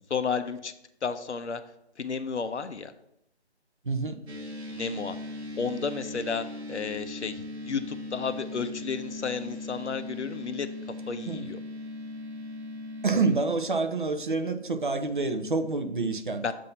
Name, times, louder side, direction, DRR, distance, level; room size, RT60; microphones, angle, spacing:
voice 1, 0.1-0.7 1.0-1.6 2.0-2.9 4.7-5.2 5.6-11.6 16.4-16.5, left 5 dB, 80° left, 10 dB, 0.7 m, -32 dB
voice 2, 3.8-4.2 11.3-11.5 13.0-16.5, right 3 dB, 45° right, 7 dB, 0.6 m, -27 dB
sound 1, 4.3-13.4, left 2 dB, 65° right, 1.3 m, -39 dB
7.5 x 2.7 x 5.5 m, 0.82 s
figure-of-eight pair, 165°, 34 cm